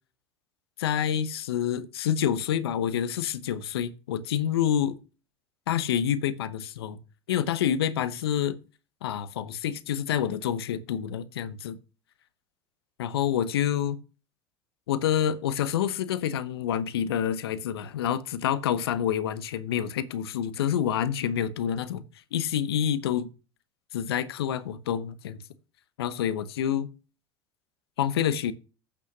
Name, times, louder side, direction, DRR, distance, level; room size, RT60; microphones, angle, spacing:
voice 1, 0.8-5.0 5.7-7.0 7.3-8.6 9.0-11.8 13.0-14.0 14.9-22.0 22.3-23.3 23.9-25.4 26.0-26.9 28.0-28.5, left 9 dB, 80° left, 0.9 m, -27 dB
8.6 x 5.9 x 5.9 m
hypercardioid pair, 80°, 13 cm